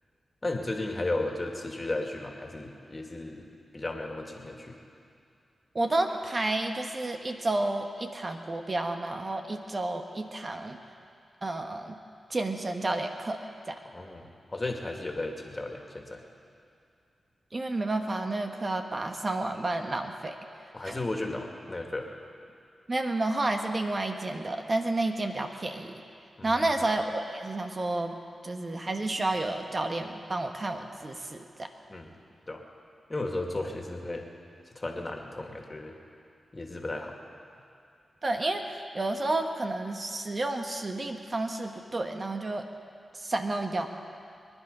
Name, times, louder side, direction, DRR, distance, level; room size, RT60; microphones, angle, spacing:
voice 1, 0.4-3.5 3.7-4.8 13.9-16.2 20.7-22.1 26.4-26.7 31.9-32.1 32.5-32.6 33.1-34.2 34.7-36.0 36.5-37.2, left 2 dB, 35° left, 2 dB, 2.3 m, -34 dB
voice 2, 5.7-10.8 11.4-11.9 12.3-13.4 13.7-13.8 17.5-20.3 20.8-21.0 22.9-25.9 26.4-28.1 28.4-31.7 38.2-42.6 43.1-43.9, right 2 dB, 40° right, 4 dB, 1.3 m, -30 dB
24.0 x 10.5 x 5.5 m, 2.5 s
cardioid pair, 45°, 0 cm